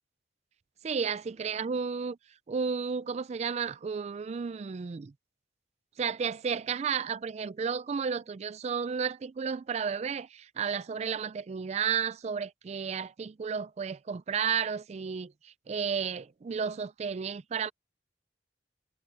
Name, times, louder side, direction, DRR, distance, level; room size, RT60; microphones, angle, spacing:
voice 1, 0.8-2.2 2.5-5.1 6.0-17.7, right 6 dB, 40° right, 0.4 m, -32 dB
head